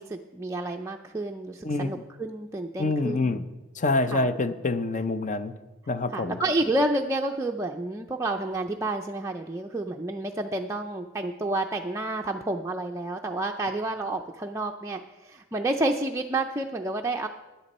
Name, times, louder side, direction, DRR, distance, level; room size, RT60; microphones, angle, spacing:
voice 1, 0.0-3.4 4.1-4.3 6.1-17.3, right 2 dB, 15° right, 1 dB, 0.4 m, -30 dB
voice 2, 2.8-3.4 3.8-5.5 5.9-6.4, left 2 dB, 35° left, 11 dB, 0.6 m, -26 dB
13.0 x 10.0 x 4.2 m, 1.1 s
head